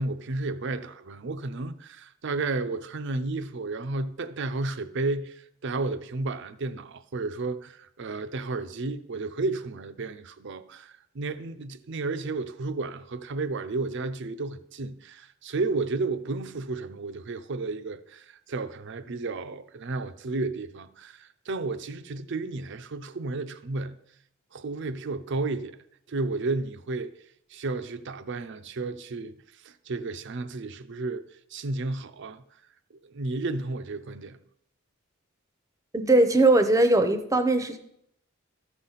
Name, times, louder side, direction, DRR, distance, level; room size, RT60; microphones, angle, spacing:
voice 1, 0.0-24.0 24.5-25.8 26.1-27.1 27.5-31.3 31.5-32.4 32.9-34.4, right 3 dB, 60° right, 0.6 m, -32 dB
voice 2, 35.9-37.8, right 2 dB, 15° right, 0.7 m, -20 dB
13.5 x 5.7 x 4.0 m
head